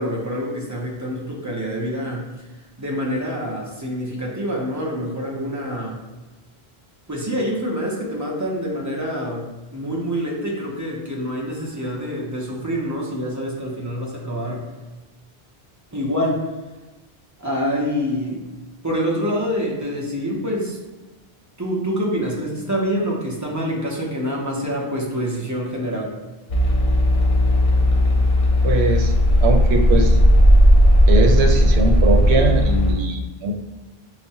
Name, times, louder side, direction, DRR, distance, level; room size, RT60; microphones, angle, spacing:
voice 1, 0.0-2.3 2.8-6.0 7.1-14.7 15.9-16.4 17.4-18.5 18.8-20.8 21.6-26.1, equal, 20° right, -3 dB, 0.5 m, -26 dB
sound 1, 26.5-32.9, equal, 45° left, 0.5 m, -15 dB
voice 2, 28.6-29.1 29.4-30.2 31.1-33.5, right 3 dB, 90° right, 3 dB, 0.8 m, -21 dB
5.7 x 2.1 x 2.7 m, 1.2 s
omnidirectional pair, 1.1 m